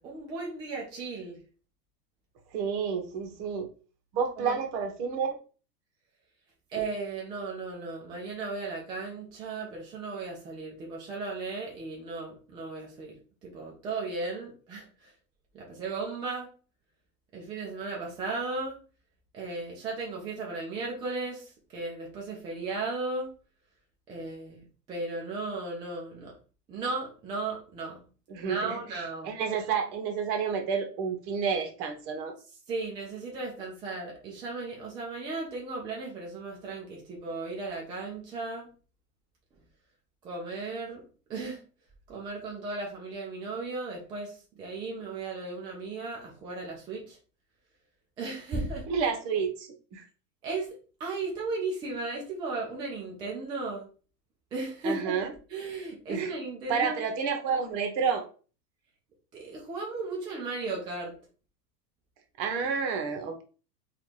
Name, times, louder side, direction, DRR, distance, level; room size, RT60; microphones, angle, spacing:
voice 1, 0.0-1.4 4.4-4.6 6.7-13.1 13.4-15.1 15.5-16.5 17.3-18.8 19.3-23.3 24.1-26.3 26.7-28.0 28.4-29.3 32.7-38.7 40.2-41.0 41.3-41.6 42.1-47.2 48.2-48.9 50.4-50.7 51.0-53.9 54.5-55.2 55.5-57.0 59.3-61.1 62.6-62.7, right 3 dB, 10° right, -2 dB, 0.3 m, -36 dB
voice 2, 2.5-3.7 4.1-5.4 28.3-28.8 29.2-32.3 48.9-50.0 54.8-55.3 56.1-56.3 56.7-58.2 62.4-63.4, right 6 dB, 45° right, 5 dB, 1.1 m, -30 dB
4.0 x 2.5 x 3.2 m, 0.37 s
hypercardioid pair, 110°, 49 cm